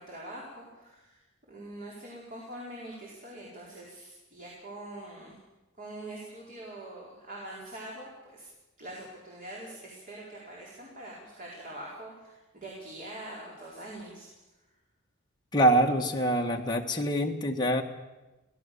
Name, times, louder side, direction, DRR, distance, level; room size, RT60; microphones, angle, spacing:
voice 1, 0.0-5.4 5.8-8.5 8.8-14.3, right 1 dB, 40° right, -4 dB, 4.8 m, -44 dB
voice 2, 15.5-17.8, right 1 dB, 20° left, 1 dB, 1.8 m, -25 dB
24.5 x 17.5 x 7.0 m, 1.1 s
head